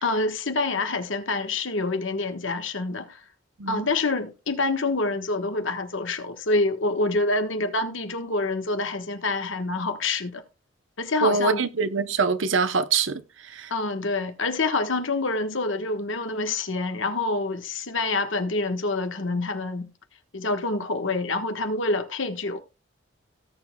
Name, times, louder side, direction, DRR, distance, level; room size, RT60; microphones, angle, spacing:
voice 1, 0.0-3.2 3.7-10.4 11.0-11.6 13.7-19.9 20.3-22.6, left 3 dB, 70° left, 1.4 m, -27 dB
voice 2, 11.2-13.2 13.5-13.7, right 5 dB, 70° right, 0.9 m, -24 dB
18.0 x 7.1 x 2.3 m
head